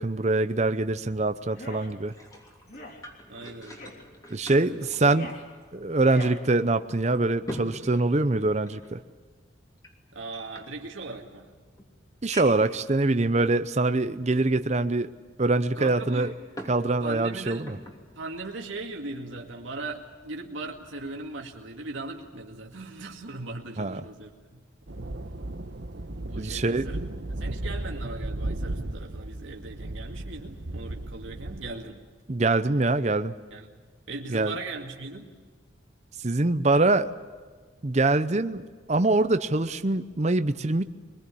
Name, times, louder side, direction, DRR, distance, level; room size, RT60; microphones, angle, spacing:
voice 1, 0.0-2.1 4.3-5.3 5.7-9.0 12.2-15.1 15.4-16.3 16.7-17.8 23.8-24.0 26.4-26.9 32.3-33.3 34.3-34.5 36.2-37.1 37.8-40.8, right 2 dB, 35° right, 10 dB, 0.7 m, -24 dB
sound 1, 1.5-1.9 2.7-3.0 3.8-4.0 4.8-5.4 6.0-6.4, left 1 dB, 50° left, 3.4 m, -42 dB
sound 2, 1.9-5.9 6.2-6.3 6.9-8.9 9.8-11.2 11.8-11.9 12.3-12.8 13.5-13.6 15.9-16.8 17.2-18.0 18.5-18.7, equal, 20° left, 3.1 m, -43 dB
voice 2, 3.3-3.8 4.6-4.8 10.1-11.5 15.8-16.3 17.0-17.6 18.1-24.6 26.2-27.0 27.3-32.0 33.5-33.8 34.1-35.3, right 2 dB, 80° right, 0 dB, 2.2 m, -39 dB
sound 3, 24.9-31.7, right 1 dB, 60° right, 1.1 m, -35 dB
23.5 x 21.0 x 8.5 m, 1.5 s
head